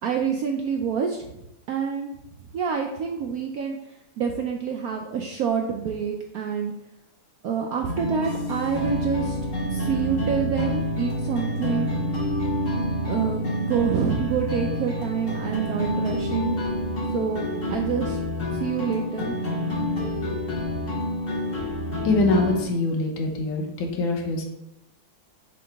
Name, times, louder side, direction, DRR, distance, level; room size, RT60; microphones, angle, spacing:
voice 1, 0.0-1.2 1.7-2.1 2.5-3.8 4.2-6.7 7.4-9.4 9.7-11.9 13.1-16.6 17.1-18.2 18.5-19.4, right 7 dB, 75° right, 2 dB, 0.8 m, -27 dB
sound 1, 7.9-22.6, equal, 55° left, 2.2 m, -28 dB
voice 2, 22.0-24.4, left 2 dB, 80° left, 2 dB, 1.7 m, -24 dB
7.8 x 3.8 x 3.4 m, 0.87 s
omnidirectional pair, 2.1 m